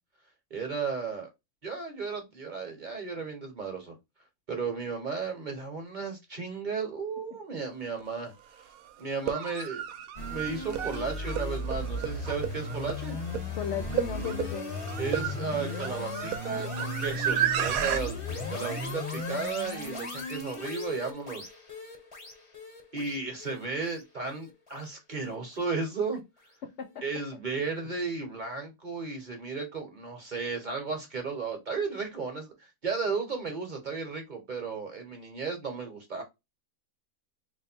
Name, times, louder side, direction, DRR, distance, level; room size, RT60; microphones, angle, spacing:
voice 1, 0.5-1.3 1.6-4.0 4.5-8.3 9.0-9.8 10.3-13.2 15.0-21.4 22.9-26.2 27.0-36.2, right 4 dB, 35° right, 1.0 m, -34 dB
sound 1, 8.0-8.1 9.1-18.0, right 10 dB, 75° right, 1.0 m, -32 dB
sound 2, 10.2-25.3, left 1 dB, 25° left, 1.0 m, -36 dB
voice 2, 13.5-14.7 26.6-26.9, left 8 dB, 70° left, 0.7 m, -35 dB
3.2 x 2.6 x 4.3 m
omnidirectional pair, 1.6 m